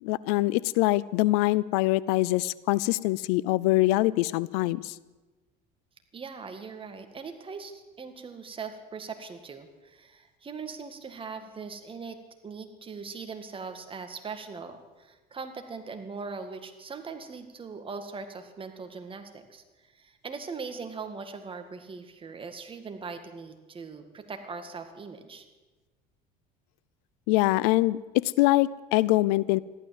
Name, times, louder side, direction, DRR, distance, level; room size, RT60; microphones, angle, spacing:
voice 1, 0.0-4.9 27.3-29.6, left 18 dB, 80° left, 21 dB, 0.5 m, -24 dB
voice 2, 6.1-12.2 12.4-19.6 19.9-25.4, right 5 dB, 25° right, 7 dB, 2.0 m, -40 dB
14.5 x 12.0 x 7.6 m, 1.2 s
supercardioid pair, 100°, 19 cm